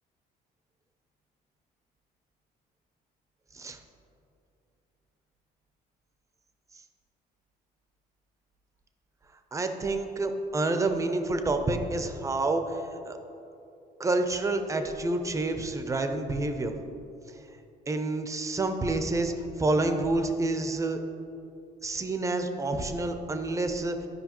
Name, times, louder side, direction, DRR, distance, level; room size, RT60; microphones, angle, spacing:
voice 1, 9.5-13.2 14.0-16.7 17.9-21.0 21.8-24.0, right 2 dB, 20° right, 6 dB, 0.6 m, -28 dB
12.5 x 5.0 x 3.0 m, 2.7 s
cardioid pair, 110°, 17 cm